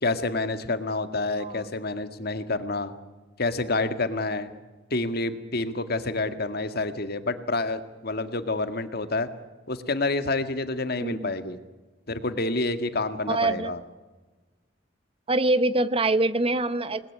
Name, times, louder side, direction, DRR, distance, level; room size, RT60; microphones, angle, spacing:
voice 1, 0.0-2.9 3.4-4.5 4.9-9.3 9.7-11.6 12.1-13.8, left 2 dB, 55° left, 10 dB, 1.9 m, -28 dB
voice 2, 13.3-13.7 15.3-17.0, right 2 dB, 30° right, 14 dB, 0.9 m, -24 dB
28.0 x 20.5 x 9.8 m, 1.3 s
head